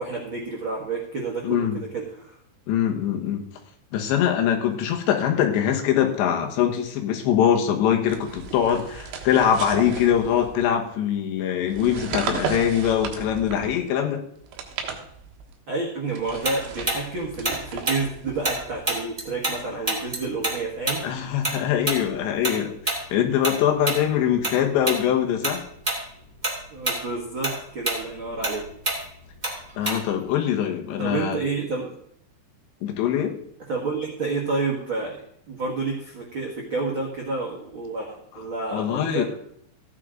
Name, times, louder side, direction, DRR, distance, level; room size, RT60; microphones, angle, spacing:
voice 1, 0.0-2.4 15.7-21.0 26.7-28.7 31.0-31.9 33.7-35.2 35.5-39.2, right 3 dB, 90° right, -2 dB, 1.1 m, -29 dB
voice 2, 1.4-1.8 2.7-3.4 3.9-14.2 21.0-25.6 29.8-31.4 32.8-33.4 38.7-39.2, left 9 dB, 75° left, 3 dB, 3.4 m, -23 dB
sound 1, 8.0-10.8 11.7-13.9 14.4-15.6 16.1-19.0, right 6 dB, 75° right, 3.6 m, -35 dB
Tick-tock, 16.4-19.6 19.9-24.6 24.8-25.1 25.4-26.0 26.3-30.3, right 2 dB, 20° right, 1.0 m, -27 dB
15.0 x 9.7 x 3.8 m, 0.69 s
omnidirectional pair, 5.4 m